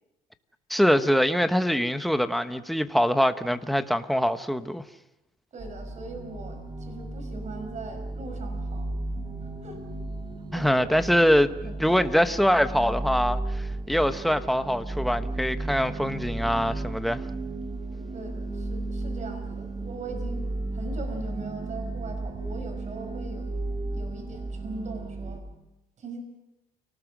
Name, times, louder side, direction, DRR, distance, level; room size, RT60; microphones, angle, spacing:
voice 1, 0.7-4.8 10.5-17.2, equal, ahead, 1.2 m, -24 dB
voice 2, 5.5-8.9 9.4-9.8 10.5-11.0 11.7-12.0 18.1-20.4 20.7-23.6 23.9-25.4 26.0-26.2, right 3 dB, 45° right, 5.5 m, -40 dB
sound 1, 5.6-25.4, right 2 dB, 30° right, 3.7 m, -34 dB
29.5 x 19.0 x 6.2 m
cardioid pair, 110°, 17 cm